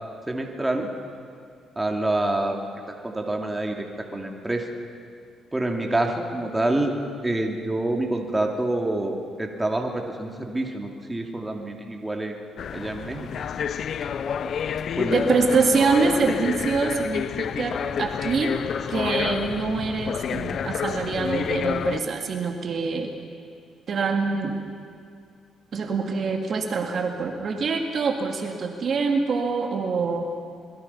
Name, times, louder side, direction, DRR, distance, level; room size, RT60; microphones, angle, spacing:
voice 1, 0.3-0.9 1.8-2.7 3.0-4.6 5.5-6.9 7.2-12.3 12.7-13.3 15.0-15.3, right 2 dB, 15° right, 2 dB, 2.7 m, -27 dB
sound 1, 12.6-22.0, left 7 dB, 60° left, 0.7 m, -29 dB
voice 2, 15.1-18.5 18.9-23.1 23.9-24.6 25.7-30.2, right 4 dB, 55° right, 3 dB, 2.4 m, -25 dB
26.0 x 22.0 x 5.7 m, 2.3 s
cardioid pair, 90°, 0 cm